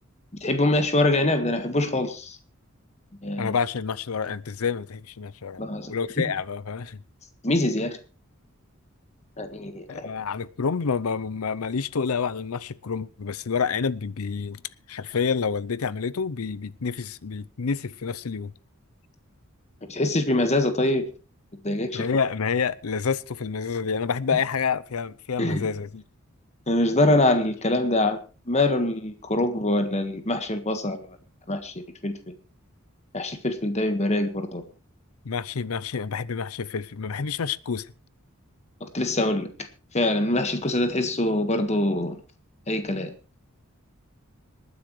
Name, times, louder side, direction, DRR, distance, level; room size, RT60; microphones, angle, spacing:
voice 1, 0.4-2.4 3.2-3.5 5.6-5.9 7.4-8.0 9.4-10.1 19.9-21.0 21.6-22.1 25.4-25.7 26.7-28.2 28.5-31.1 31.5-31.7 32.0-32.2 33.1-34.6 38.8-39.5 39.9-42.2 42.7-43.1, left 1 dB, 30° left, 1.6 m, -24 dB
voice 2, 3.4-7.0 9.9-14.6 14.9-18.5 21.9-26.0 35.2-37.9, left 5 dB, 90° left, 0.6 m, -28 dB
26.0 x 9.7 x 3.2 m
head